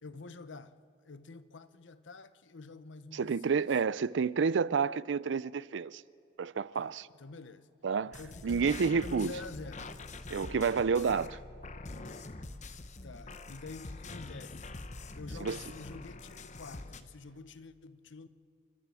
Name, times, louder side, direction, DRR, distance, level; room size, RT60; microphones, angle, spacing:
voice 1, 0.0-0.7 1.0-3.7 6.8-7.7 8.1-9.9 13.0-14.7 15.1-18.3, left 3 dB, 75° left, 0.8 m, -48 dB
voice 2, 3.1-6.0 6.4-7.0 7.8-9.3 10.3-11.4 15.4-15.6, right 5 dB, 70° right, 0.4 m, -30 dB
sound 1, 8.1-17.0, left 2 dB, 40° left, 0.9 m, -44 dB
29.5 x 12.5 x 7.6 m
head